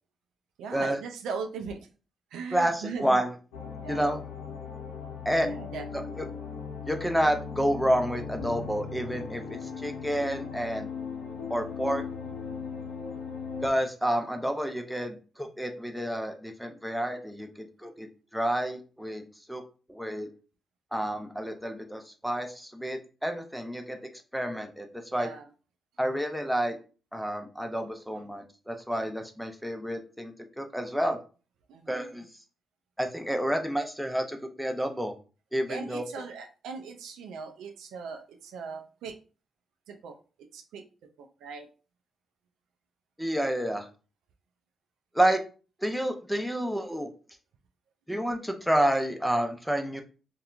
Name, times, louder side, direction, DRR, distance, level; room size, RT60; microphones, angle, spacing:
voice 1, 0.6-1.9 2.3-3.2 3.8-4.1 5.5-6.1 25.1-25.4 31.7-32.1 35.7-39.2 39.9-40.1 40.5-40.8 41.4-41.7, right 5 dB, 75° right, 4 dB, 0.3 m, -39 dB
voice 2, 2.5-3.4 3.9-4.2 5.3-5.5 5.9-6.2 6.8-10.9 11.5-12.0 13.6-18.1 18.3-19.6 19.9-20.3 20.9-24.0 24.3-25.3 26.0-26.8 27.1-31.2 31.9-32.2 33.0-35.1 35.5-36.2 43.2-43.9 45.1-45.4 45.8-47.1 48.1-50.0, right 1 dB, ahead, 4 dB, 0.6 m, -29 dB
sound 1, 3.5-13.7, left 6 dB, 80° left, 0.6 m, -38 dB
2.7 x 2.2 x 2.4 m, 0.36 s
hypercardioid pair, 45°, 0 cm